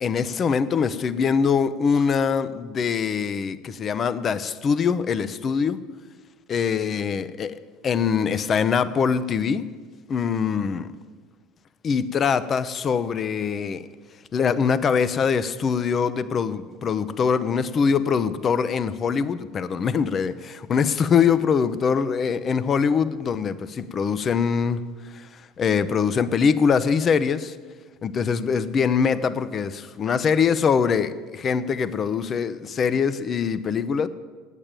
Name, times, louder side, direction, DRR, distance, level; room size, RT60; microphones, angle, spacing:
voice 1, 0.0-5.8 6.5-9.7 10.1-10.9 11.8-13.9 14.3-24.8 25.1-27.6 28.0-34.1, left 6 dB, 35° left, 0.6 m, -23 dB
8.8 x 8.3 x 8.8 m
supercardioid pair, 90°, 0 cm